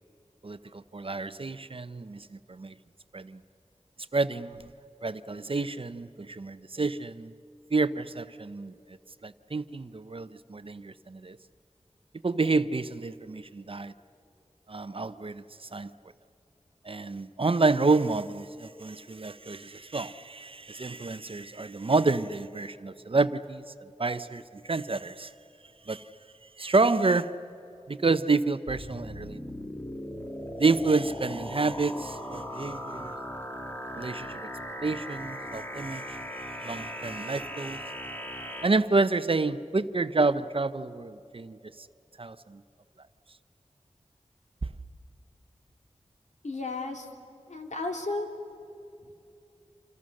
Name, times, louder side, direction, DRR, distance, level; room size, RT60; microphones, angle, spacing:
voice 1, 0.4-2.7 3.1-3.4 4.1-4.7 5.0-7.3 7.7-8.7 9.2-11.4 12.2-13.9 14.7-15.9 16.8-23.6 24.0-25.3 25.9-26.0 26.6-27.3 27.9-29.4 30.6-33.1 34.0-34.5 34.8-37.8 38.6-41.9 42.2-42.6, right 3 dB, 50° right, 13 dB, 0.7 m, -29 dB
sound 1, 28.7-38.7, equal, 15° left, 1.8 m, -38 dB
voice 2, 46.4-47.1 47.5-48.3, left 3 dB, 75° left, 3 dB, 2.5 m, -33 dB
28.0 x 27.5 x 6.5 m, 2.7 s
wide cardioid pair, 70°, 12 cm